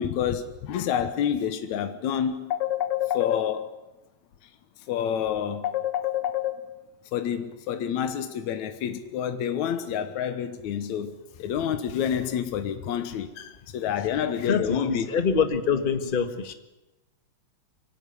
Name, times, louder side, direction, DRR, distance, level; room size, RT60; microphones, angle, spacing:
voice 1, 0.0-3.8 4.9-6.6 7.1-15.1, left 9 dB, 75° left, 2.6 m, -28 dB
voice 2, 14.5-16.5, left 6 dB, 25° left, 1.1 m, -25 dB
24.5 x 18.5 x 10.0 m
omnidirectional pair, 3.3 m